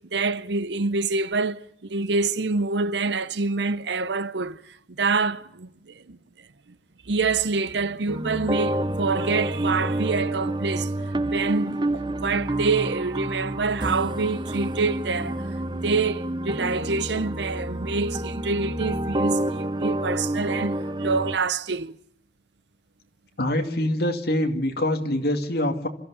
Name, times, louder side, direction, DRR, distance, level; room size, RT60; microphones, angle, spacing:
voice 1, 0.1-4.6 5.0-6.2 7.1-11.0 11.2-15.4 15.8-22.0, right 4 dB, 70° right, 0.8 m, -26 dB
sound 1, 8.1-21.4, right 1 dB, 25° right, 0.7 m, -28 dB
voice 2, 23.4-25.9, left 1 dB, 60° left, 2.3 m, -24 dB
30.0 x 14.0 x 7.0 m
head